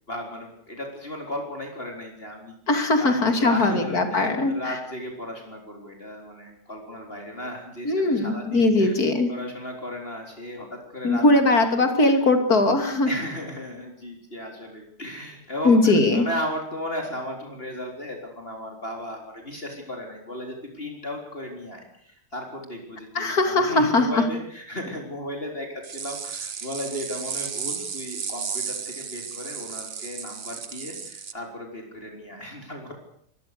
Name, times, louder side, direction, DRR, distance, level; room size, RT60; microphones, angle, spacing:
voice 1, 0.1-2.6 2.9-9.0 9.3-11.2 13.0-32.9, left 1 dB, 35° left, 2 dB, 4.4 m, -35 dB
voice 2, 2.7-4.8 7.8-9.3 11.0-13.1 15.6-16.3 23.1-24.2, left 2 dB, 60° left, 7 dB, 3.4 m, -20 dB
sound 1, 25.8-31.3, right 6 dB, 40° right, 1.2 m, -34 dB
24.0 x 20.5 x 6.8 m, 0.65 s
omnidirectional pair, 1.8 m